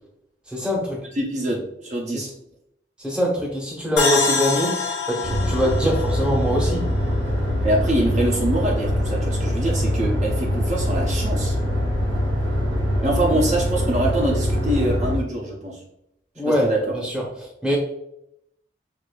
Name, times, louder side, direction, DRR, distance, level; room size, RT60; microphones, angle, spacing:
voice 1, 0.5-1.0 2.1-2.3 3.0-4.7 5.1-6.8 16.4-17.8, equal, 5° right, -2 dB, 0.7 m, -23 dB
voice 2, 1.2-2.3 7.6-11.5 13.0-15.8 16.5-16.9, right 1 dB, 40° right, -2 dB, 0.5 m, -24 dB
sound 1, 4.0-7.5, left 4 dB, 70° left, 1.0 m, -26 dB
sound 2, 5.2-15.2, equal, 75° right, 0.7 m, -23 dB
4.7 x 2.5 x 2.3 m, 0.78 s
head